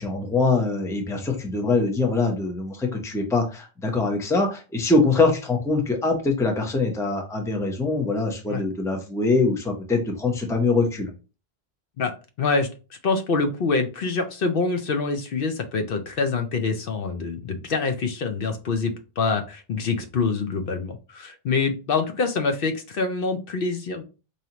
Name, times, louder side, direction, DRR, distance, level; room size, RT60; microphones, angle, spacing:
voice 1, 0.0-11.1, left 3 dB, 5° left, 3 dB, 0.6 m, -23 dB
voice 2, 12.0-12.7 13.0-24.0, left 4 dB, 65° left, 7 dB, 0.8 m, -25 dB
4.8 x 2.7 x 2.8 m, 0.32 s
omnidirectional pair, 1.1 m